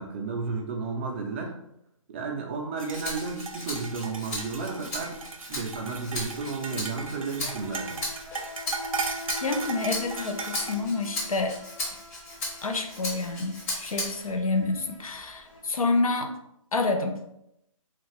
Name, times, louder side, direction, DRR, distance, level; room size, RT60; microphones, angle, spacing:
voice 1, 0.0-1.6 2.1-5.2 5.5-8.0, right 4 dB, 20° right, 0 dB, 0.4 m, -32 dB
sound 1, 2.8-10.8, right 4 dB, 75° right, 0.6 m, -37 dB
Rattle (instrument), 2.9-14.4 14.8-16.0, left 1 dB, 25° left, 0.9 m, -37 dB
Insect, 4.9-5.0 5.2-16.2, left 2 dB, 65° left, 0.9 m, -45 dB
voice 2, 9.4-11.6 12.6-16.4 16.7-17.2, left 3 dB, 85° left, 6 dB, 0.5 m, -28 dB
3.1 x 2.4 x 3.2 m, 0.82 s
figure-of-eight pair, 145°, 18 cm